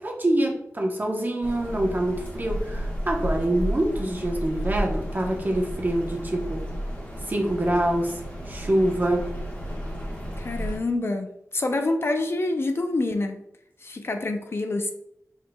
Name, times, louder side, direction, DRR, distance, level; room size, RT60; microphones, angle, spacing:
voice 1, 0.0-6.6 7.3-9.3, right 1 dB, 35° right, 0 dB, 0.9 m, -25 dB
sound 1, 1.4-10.8, equal, 30° left, 1.3 m, -32 dB
voice 2, 10.4-13.4 13.8-14.9, left 2 dB, 45° left, 5 dB, 0.5 m, -27 dB
4.9 x 4.0 x 2.3 m, 0.79 s
wide cardioid pair, 85°, 6 cm